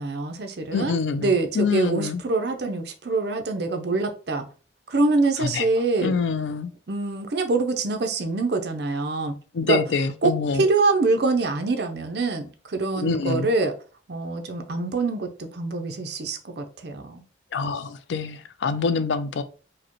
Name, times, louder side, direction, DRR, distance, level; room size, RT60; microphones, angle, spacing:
voice 1, 0.0-4.4 4.9-6.1 6.9-9.3 9.6-9.8 10.2-13.7 14.1-17.2, right 3 dB, 60° right, 0.6 m, -25 dB
voice 2, 0.7-2.2 5.4-5.7 6.0-6.7 9.5-10.7 12.9-13.5 17.5-19.4, left 5 dB, 70° left, 0.4 m, -25 dB
4.8 x 2.1 x 2.9 m
head